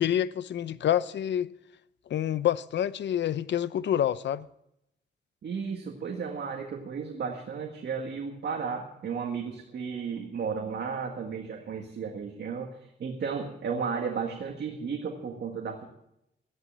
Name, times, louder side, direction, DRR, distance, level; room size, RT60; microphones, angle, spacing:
voice 1, 0.0-1.5 2.1-4.5, left 10 dB, 85° left, 0.6 m, -27 dB
voice 2, 5.4-15.8, right 6 dB, 70° right, 1.8 m, -34 dB
14.5 x 11.0 x 7.4 m
wide cardioid pair, 115°, 18 cm